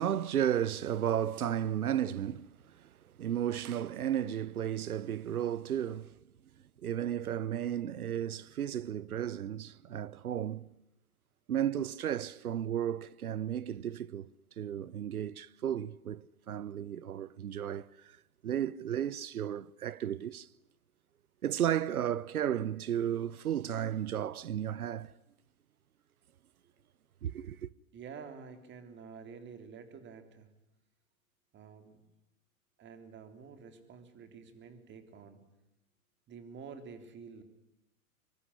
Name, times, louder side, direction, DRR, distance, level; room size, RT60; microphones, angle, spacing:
voice 1, 0.0-2.8 3.2-6.2 6.8-10.7 11.5-14.3 14.6-18.1 18.4-20.5 21.4-25.1 27.2-27.7, right 10 dB, 80° right, 1.0 m, -34 dB
voice 2, 27.9-30.5 31.5-32.0 32.8-35.4 36.3-37.4, right 6 dB, 25° right, 3.6 m, -49 dB
24.5 x 23.5 x 10.0 m
hypercardioid pair, 120°, 43 cm